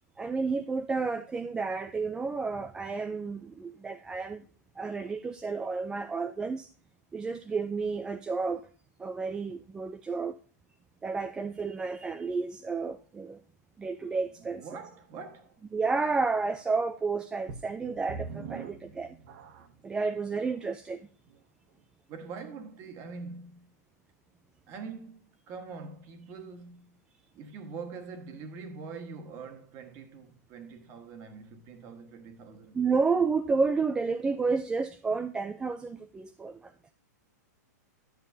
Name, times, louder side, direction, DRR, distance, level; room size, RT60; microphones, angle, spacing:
voice 1, 0.2-4.4 4.8-6.7 7.1-8.7 9.0-10.3 11.0-13.4 13.8-14.6 15.7-19.2 19.8-21.0 32.7-36.7, right 4 dB, 10° right, 0.3 m, -31 dB
voice 2, 14.4-15.6 22.1-23.7 24.7-27.0 27.3-32.8, right 5 dB, 30° right, 1.4 m, -44 dB
sound 1, 17.5-19.9 20.6-20.7 21.3-21.4, right 5 dB, 50° right, 1.2 m, -42 dB
11.5 x 7.3 x 2.7 m
hypercardioid pair, 155°, 9 cm